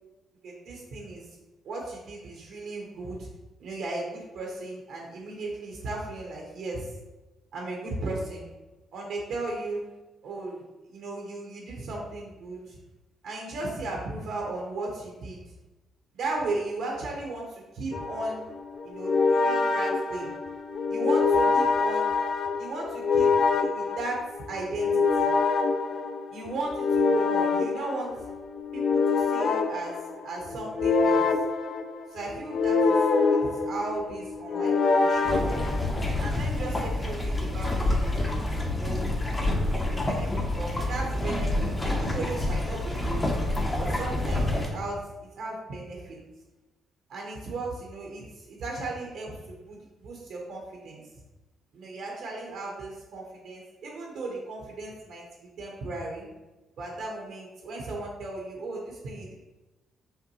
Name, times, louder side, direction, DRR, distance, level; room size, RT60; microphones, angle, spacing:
voice 1, 0.4-1.3 1.6-3.3 3.6-6.9 7.5-8.4 8.9-9.9 10.2-10.6 10.9-12.8 13.2-15.4 16.1-18.4 18.8-20.3 20.9-22.1 22.6-24.2 24.5-25.3 26.3-28.1 28.7-30.0 30.2-31.3 32.1-33.0 33.3-35.6 36.2-38.4 38.7-39.5 39.9-43.2 43.8-46.2 47.1-51.0 51.7-55.2 55.6-56.3 56.8-59.3, right 2 dB, 75° right, -1 dB, 0.9 m, -36 dB
sound 1, 17.9-36.3, left 4 dB, 55° left, 0.3 m, -25 dB
sound 2, 35.2-44.7, left 2 dB, 20° left, 0.7 m, -28 dB
5.6 x 2.2 x 3.0 m, 1.1 s
cardioid pair, 90°, 0 cm